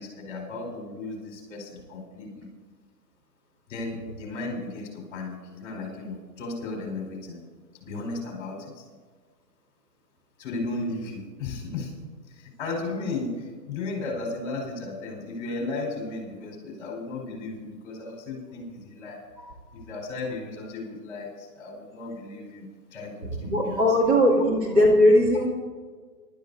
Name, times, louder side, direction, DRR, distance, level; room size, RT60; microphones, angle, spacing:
voice 1, 0.0-2.5 3.7-7.4 7.8-8.8 10.4-11.9 12.3-19.2 19.7-23.8 24.3-24.5, left 3 dB, 30° left, -1 dB, 4.6 m, -35 dB
voice 2, 23.4-25.5, equal, 25° right, -4 dB, 2.7 m, -19 dB
25.0 x 12.5 x 2.7 m, 1.5 s
hypercardioid pair, 145°, 49 cm